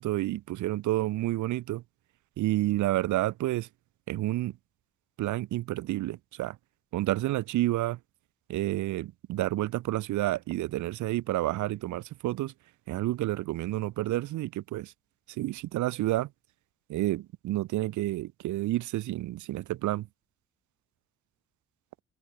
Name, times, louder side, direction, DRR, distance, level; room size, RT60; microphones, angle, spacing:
voice 1, 0.0-1.8 2.4-3.7 4.1-4.6 5.2-6.6 6.9-8.0 8.5-12.5 12.9-14.9 15.3-16.3 16.9-20.1, right 16 dB, 75° right, 0.7 m, -30 dB
cardioid pair, 90°, 30 cm